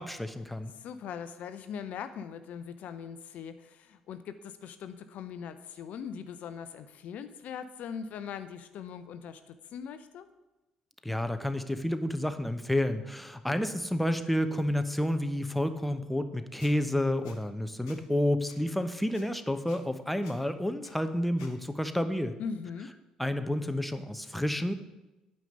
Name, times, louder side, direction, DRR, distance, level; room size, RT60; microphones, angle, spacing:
voice 1, 0.0-0.7 11.0-22.3 23.2-24.7, left 1 dB, 5° left, 9 dB, 0.9 m, -30 dB
voice 2, 0.7-10.3 22.4-22.9, left 7 dB, 60° left, 11 dB, 0.6 m, -41 dB
Squeak, 16.6-16.7 17.2-17.4 17.9-18.0 18.5-18.6 19.1-19.2 19.7-19.8 20.2-20.4 20.8-20.9 21.4-21.5, left 7 dB, 75° left, 1.1 m, -52 dB
9.1 x 5.4 x 7.9 m, 1.0 s
figure-of-eight pair, 50°, 3 cm